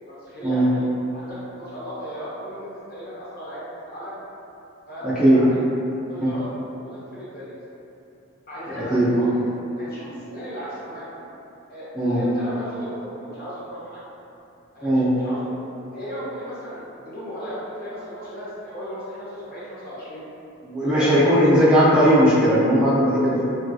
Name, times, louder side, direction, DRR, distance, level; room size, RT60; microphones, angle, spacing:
voice 1, 0.0-4.1 4.9-5.5 6.1-7.6 8.5-9.5 9.8-11.1 11.7-14.0 14.7-15.6 15.9-20.2 20.8-21.1, equal, 45° left, -9 dB, 0.9 m, -36 dB
voice 2, 5.0-5.4 8.9-9.1 11.9-12.2 14.8-15.1 20.6-23.4, equal, 5° right, -12 dB, 0.5 m, -17 dB
3.3 x 2.3 x 2.6 m, 2.9 s
head